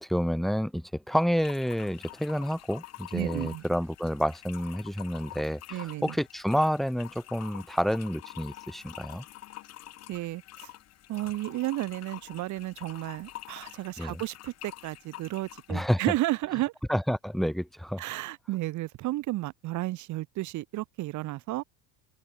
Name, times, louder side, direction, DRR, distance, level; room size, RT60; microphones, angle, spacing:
voice 1, 0.0-9.2 14.0-14.2 15.7-16.0 16.9-18.0, equal, ahead, 0.5 m, -29 dB
sound 1, 1.3-15.8, left 15 dB, 45° left, 1.5 m, -47 dB
voice 2, 3.1-3.6 5.7-6.1 10.1-10.7 11.1-16.7 18.0-21.6, right 17 dB, 50° right, 2.1 m, -32 dB
cardioid pair, 140°, 37 cm